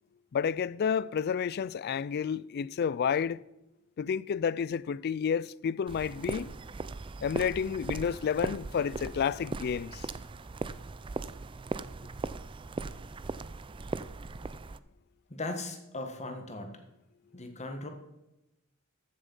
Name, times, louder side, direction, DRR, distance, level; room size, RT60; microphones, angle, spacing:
voice 1, 0.3-3.4 4.0-6.5 7.2-10.1, left 7 dB, 50° left, 0.3 m, -30 dB
sound 1, 5.9-14.8, right 3 dB, 25° right, 0.4 m, -38 dB
voice 2, 15.3-16.7 17.3-17.9, left 2 dB, 35° left, 1.5 m, -38 dB
14.5 x 6.8 x 5.4 m
head